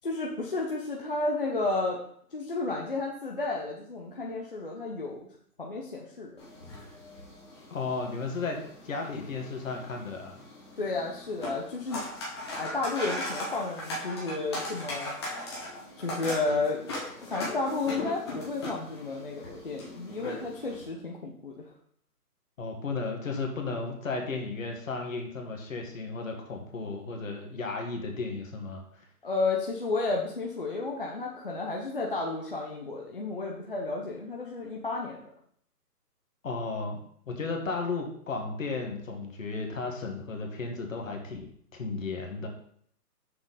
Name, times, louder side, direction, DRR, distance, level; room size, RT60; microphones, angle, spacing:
voice 1, 0.0-2.0 2.3-5.3 5.6-6.4 10.8-12.0 12.6-15.1 16.0-16.9 17.2-21.7 29.2-35.3, left 3 dB, 35° left, -2 dB, 0.7 m, -32 dB
sound 1, 6.4-20.8, left 1 dB, 15° left, 1.2 m, -39 dB
voice 2, 7.7-10.4 22.6-29.0 36.4-37.0 37.3-41.5 41.7-42.5, left 3 dB, 55° left, 2 dB, 1.7 m, -34 dB
6.5 x 5.6 x 4.1 m, 0.65 s
hypercardioid pair, 175°, 48 cm